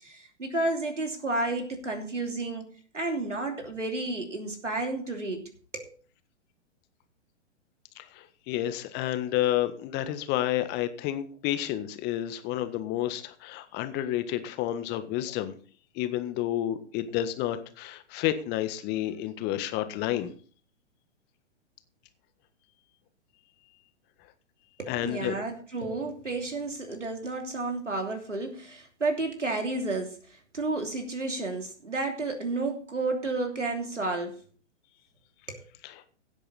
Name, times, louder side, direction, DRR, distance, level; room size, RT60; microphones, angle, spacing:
voice 1, 0.0-2.7 2.9-5.4 5.7-5.9 24.8-34.4 35.5-35.6, right 2 dB, 90° right, 3 dB, 3.0 m, -31 dB
voice 2, 7.9-15.5 15.9-20.3 24.9-25.3 35.8-35.9, left 13 dB, 30° left, 10 dB, 1.6 m, -30 dB
16.5 x 8.7 x 4.2 m, 0.42 s
figure-of-eight pair, 120°, 35 cm